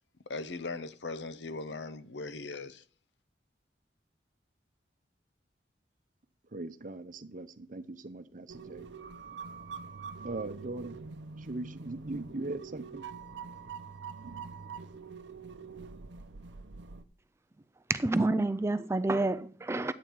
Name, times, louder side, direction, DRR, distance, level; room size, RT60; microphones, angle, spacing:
voice 1, 0.3-2.8, left 3 dB, 70° left, 0.7 m, -39 dB
voice 2, 6.5-8.9 10.2-11.0 11.3-13.0, right 2 dB, 45° right, 0.8 m, -40 dB
sound 1, 8.5-17.0, right 5 dB, 75° right, 0.6 m, -45 dB
voice 3, 17.9-19.9, right 2 dB, 15° right, 0.4 m, -28 dB
11.0 x 8.5 x 4.6 m
head